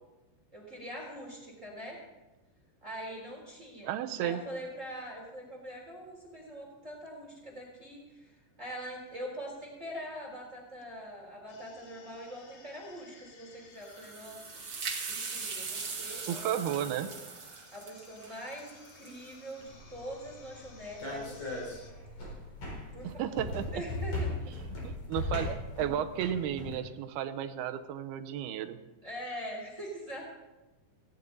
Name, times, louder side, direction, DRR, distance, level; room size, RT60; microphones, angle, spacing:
voice 1, 0.5-2.0 2.8-14.6 15.1-16.7 17.0-17.1 17.7-21.6 22.9-24.3 29.0-30.2, equal, 20° right, -1 dB, 3.4 m, -43 dB
voice 2, 3.8-4.4 16.3-17.1 23.0-23.8 24.8-28.8, right 10 dB, 75° right, 9 dB, 2.6 m, -33 dB
sound 1, 11.5-21.9, left 4 dB, 80° left, 4.6 m, -57 dB
sound 2, 13.8-19.3, right 5 dB, 40° right, 1.9 m, -40 dB
sound 3, 19.6-26.7, left 2 dB, 40° left, 5.5 m, -38 dB
18.0 x 17.0 x 4.0 m, 1.1 s
omnidirectional pair, 4.9 m